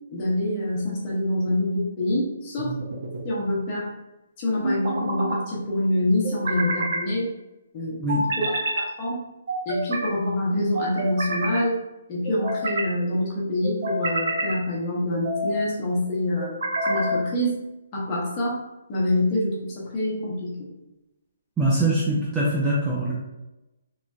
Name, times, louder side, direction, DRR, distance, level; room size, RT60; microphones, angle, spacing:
voice 1, 0.1-2.7 3.2-3.9 4.4-7.3 7.7-8.0 8.4-9.2 9.7-11.8 12.1-16.5 16.9-17.6 17.9-18.6 18.9-20.7, left 1 dB, 20° left, -5 dB, 0.8 m, -26 dB
sound 1, 2.6-3.2 4.6-5.4 6.2-7.0 8.1-8.9 9.5-10.1 10.7-11.6 12.2-12.9 13.6-14.6 15.1-15.6 16.4-17.2, right 1 dB, 50° right, 0.6 m, -28 dB
voice 2, 21.6-23.1, right 1 dB, 10° right, -7 dB, 0.3 m, -23 dB
3.0 x 2.6 x 2.3 m, 0.98 s
hypercardioid pair, 175°, 0 cm